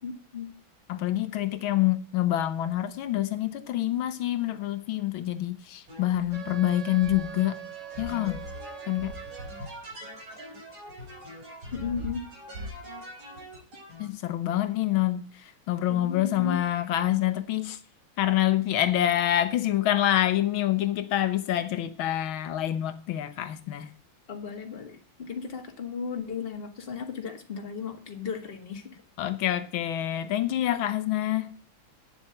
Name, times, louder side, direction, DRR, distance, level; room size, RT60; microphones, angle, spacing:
voice 1, 0.0-0.5 11.7-12.3 15.9-16.6 24.3-29.0, left 6 dB, 30° left, 1.8 m, -35 dB
voice 2, 0.9-7.6 8.0-8.4 8.9-9.1 14.0-17.8 18.2-23.9 29.2-31.5, left 13 dB, 85° left, 1.7 m, -26 dB
sound 1, 5.9-14.1, equal, 90° right, 5.1 m, -42 dB
Wind instrument woodwind instrument, 6.3-9.9, right 9 dB, 70° right, 6.3 m, -42 dB
9.1 x 7.4 x 7.7 m
omnidirectional pair, 2.2 m